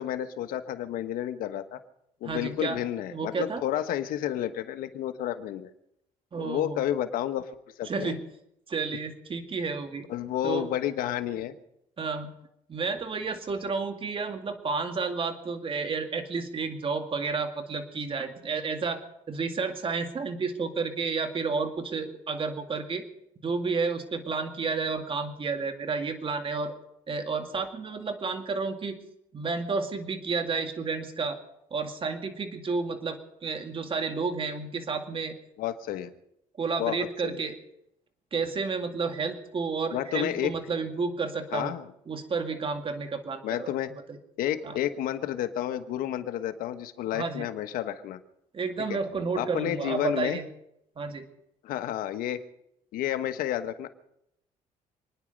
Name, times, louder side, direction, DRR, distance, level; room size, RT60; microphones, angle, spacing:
voice 1, 0.0-1.8 2.2-5.7 6.4-7.4 7.8-8.1 10.1-11.6 35.6-36.1 36.8-37.0 37.2-37.4 39.9-40.5 41.5-41.8 43.4-44.0 44.4-48.2 48.9-49.0 49.4-50.4 51.6-52.4 52.9-53.9, left 11 dB, 85° left, 9 dB, 1.3 m, -30 dB
voice 2, 2.2-2.8 3.1-3.6 6.3-6.8 7.8-8.2 8.7-10.1 10.4-10.7 12.0-12.3 12.7-23.0 23.4-26.7 27.1-29.0 29.3-31.4 31.7-35.3 36.6-37.6 38.3-41.7 42.1-43.7 44.1-44.2 44.6-44.8 47.1-47.5 48.5-50.5 51.0-51.3, right 4 dB, 40° right, 6 dB, 2.2 m, -31 dB
27.5 x 10.0 x 5.3 m, 0.79 s
cardioid pair, 100°, 14 cm